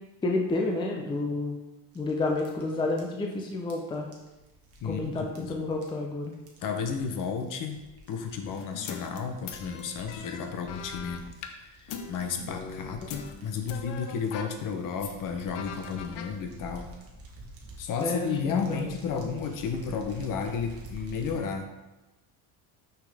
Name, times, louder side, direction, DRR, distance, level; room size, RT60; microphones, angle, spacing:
voice 1, 0.2-1.6 1.9-4.1 4.8-6.3 18.0-19.3, left 2 dB, 10° left, 1 dB, 0.5 m, -30 dB
sound 1, 1.9-21.4, right 1 dB, 30° right, 1.3 m, -49 dB
voice 2, 4.8-5.7 6.6-11.3 11.6-16.9 17.8-21.7, left 6 dB, 45° left, 6 dB, 0.8 m, -33 dB
sound 2, 8.6-11.5 11.9-14.5 14.9-15.2 15.6-16.3, left 7 dB, 80° left, 0.8 m, -41 dB
6.1 x 5.9 x 3.4 m, 1.0 s
cardioid pair, 145°, 44 cm